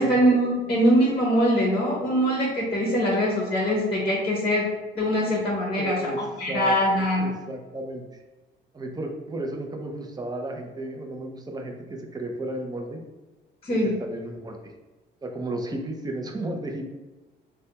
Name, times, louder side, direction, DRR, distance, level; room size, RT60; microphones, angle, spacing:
voice 1, 0.0-4.7 4.9-7.3 13.6-13.9, equal, 25° left, -2 dB, 0.8 m, -23 dB
voice 2, 5.7-6.2 6.5-8.0 8.7-13.0 14.0-14.7 15.2-16.9, right 1 dB, 20° right, 3 dB, 0.5 m, -33 dB
3.2 x 2.2 x 2.8 m, 1.2 s
cardioid pair, 90°, 20 cm